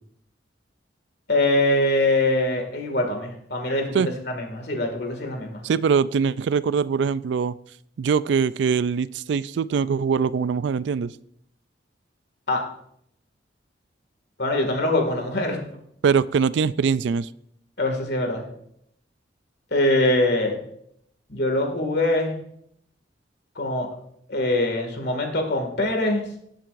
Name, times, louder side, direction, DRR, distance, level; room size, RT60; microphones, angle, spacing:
voice 1, 1.3-5.6 12.5-12.6 14.4-15.6 17.8-18.4 19.7-20.6 21.3-22.3 23.6-23.9 24.3-26.2, left 1 dB, 60° left, 3 dB, 2.1 m, -23 dB
voice 2, 5.6-7.6 8.0-11.1 16.0-17.3, right 6 dB, 70° right, 17 dB, 0.3 m, -22 dB
18.0 x 7.6 x 2.5 m, 0.70 s
head